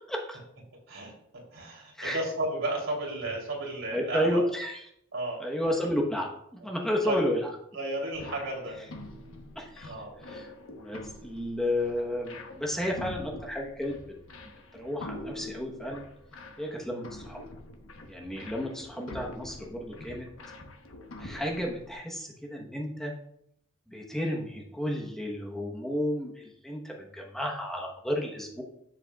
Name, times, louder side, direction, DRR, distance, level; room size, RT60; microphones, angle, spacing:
voice 1, 0.1-0.4 2.0-2.2 3.9-4.8 5.4-7.5 9.6-9.9 10.2-14.0 14.8-16.1 16.6-17.4 18.1-20.3 21.2-23.1 23.9-28.6, left 1 dB, ahead, -1 dB, 1.0 m, -32 dB
voice 2, 1.5-4.4 5.1-5.4 7.0-7.2 7.7-8.8 9.8-10.1 21.2-21.4, right 1 dB, 80° right, -2 dB, 3.1 m, -33 dB
sound 1, 8.1-21.9, left 1 dB, 90° left, 1.1 m, -45 dB
11.0 x 7.7 x 2.3 m, 0.73 s
head